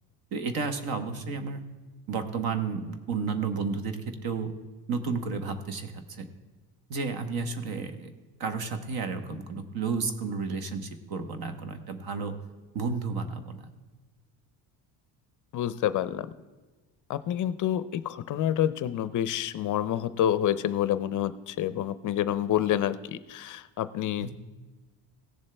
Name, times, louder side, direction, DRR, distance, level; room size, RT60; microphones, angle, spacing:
voice 1, 0.3-1.6 2.1-4.5 4.9-6.3 6.9-8.1 8.4-12.3 12.7-13.7 24.2-24.3, right 4 dB, 60° right, 8 dB, 1.3 m, -32 dB
voice 2, 15.5-16.3 17.1-24.3, left 11 dB, 50° left, 14 dB, 0.5 m, -28 dB
17.0 x 7.2 x 3.3 m, 1.3 s
cardioid pair, 140°, 42 cm